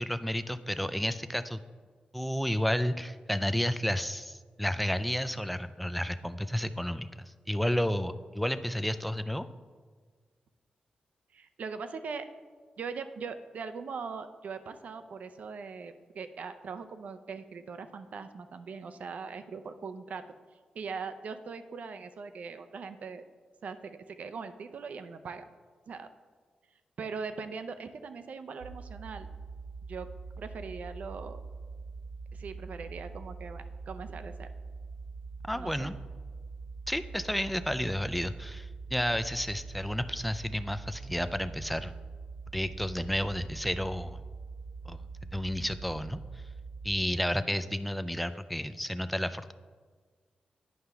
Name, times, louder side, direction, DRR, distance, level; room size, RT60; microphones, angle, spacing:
voice 1, 0.0-1.6 2.1-9.5 35.4-36.0 36.9-41.9 42.5-44.2 44.9-45.0 45.3-46.2 46.8-49.5, equal, ahead, 12 dB, 0.3 m, -31 dB
voice 2, 11.3-12.3 12.8-20.2 20.7-23.3 23.6-25.5 25.9-26.1 27.0-29.3 29.9-30.1 30.4-31.4 32.3-34.5 35.5-35.9, right 5 dB, 65° right, 10 dB, 0.5 m, -41 dB
sound 1, 28.6-47.0, right 4 dB, 85° right, 1.1 m, -43 dB
9.4 x 5.5 x 3.4 m, 1.5 s
cardioid pair, 90°, 3 cm